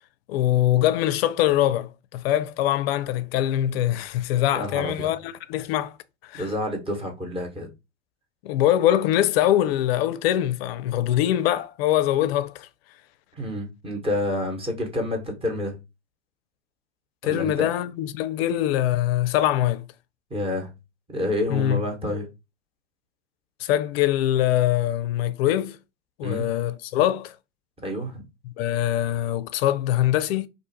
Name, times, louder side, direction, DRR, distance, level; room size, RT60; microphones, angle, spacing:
voice 1, 0.3-6.0 6.2-6.5 8.4-12.7 17.2-19.9 21.5-21.8 23.6-25.8 26.2-27.4 28.6-30.5, left 12 dB, 55° left, 0.5 m, -23 dB
voice 2, 4.5-5.1 6.3-7.7 13.4-15.8 17.2-17.7 20.3-20.7 21.1-22.3 26.2-26.4 27.8-28.2, left 1 dB, 15° right, 1.1 m, -28 dB
2.6 x 2.4 x 4.0 m
hypercardioid pair, 100°, 38 cm